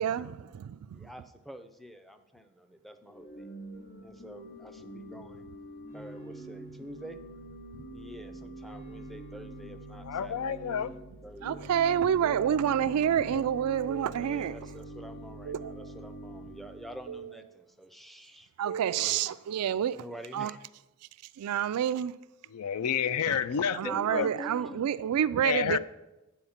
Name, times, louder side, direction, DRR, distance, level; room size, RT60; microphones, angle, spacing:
voice 1, 0.0-1.1 11.4-14.6 15.5-15.9 17.1-17.3 18.6-20.0 20.3-20.5 21.4-22.1 23.3-23.4 23.7-25.8, right 9 dB, 85° right, 0.3 m, -28 dB
voice 2, 0.9-3.5 4.0-5.5 5.9-7.2 7.9-10.4 11.2-11.7 14.1-18.5 19.0-19.2 19.9-20.6 23.8-24.9, equal, ahead, 0.4 m, -46 dB
Organ / Church bell, 3.1-17.2, right 2 dB, 45° left, 3.2 m, -45 dB
voice 3, 10.0-10.9 13.3-13.4 22.5-23.8 24.1-24.3 25.4-25.8, left 7 dB, 80° left, 0.4 m, -29 dB
9.2 x 4.2 x 7.1 m
head